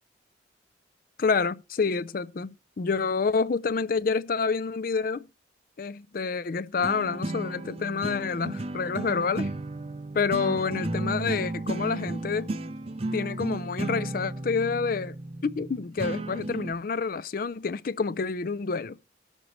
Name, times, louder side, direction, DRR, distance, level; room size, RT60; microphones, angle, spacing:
voice 1, 1.2-5.3 5.8-9.5 10.1-12.5 13.1-15.2 15.4-19.0, left 5 dB, 50° left, 0.4 m, -28 dB
sound 1, 6.8-16.7, right 2 dB, 30° right, 0.5 m, -34 dB
19.0 x 6.5 x 3.1 m
head